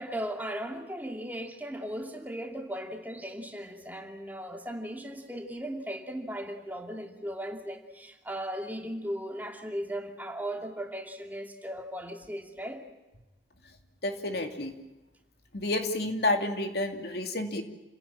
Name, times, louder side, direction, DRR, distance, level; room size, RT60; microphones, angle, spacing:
voice 1, 0.0-12.8, equal, 10° right, 2 dB, 2.6 m, -37 dB
voice 2, 14.0-14.7 15.5-17.6, left 2 dB, 65° left, 4 dB, 2.7 m, -30 dB
29.5 x 17.0 x 8.9 m, 1.1 s
head